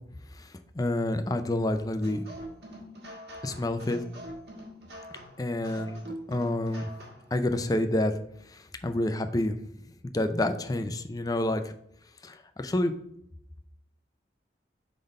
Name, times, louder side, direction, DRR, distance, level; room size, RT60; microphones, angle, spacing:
voice 1, 0.3-2.3 3.4-4.0 5.4-6.0 6.3-6.9 7.3-8.2 8.5-9.6 10.1-11.7 12.2-12.9, left 1 dB, 20° left, 8 dB, 0.4 m, -28 dB
sound 1, 2.0-7.3, equal, 60° right, 1.5 m, -44 dB
5.0 x 3.9 x 5.2 m, 0.74 s
head